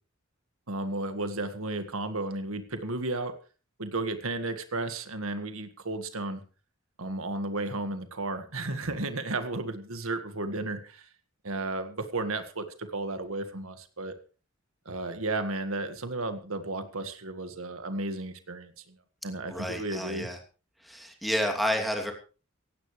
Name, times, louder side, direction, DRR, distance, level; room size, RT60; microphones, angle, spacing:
voice 1, 0.7-3.3 3.8-6.4 7.0-11.1 11.4-14.1 14.8-18.9 19.2-20.3, right 2 dB, 85° right, 9 dB, 1.7 m, -33 dB
voice 2, 19.5-20.4 20.8-22.1, equal, ahead, 2 dB, 2.8 m, -30 dB
17.0 x 16.5 x 3.3 m, 0.36 s
head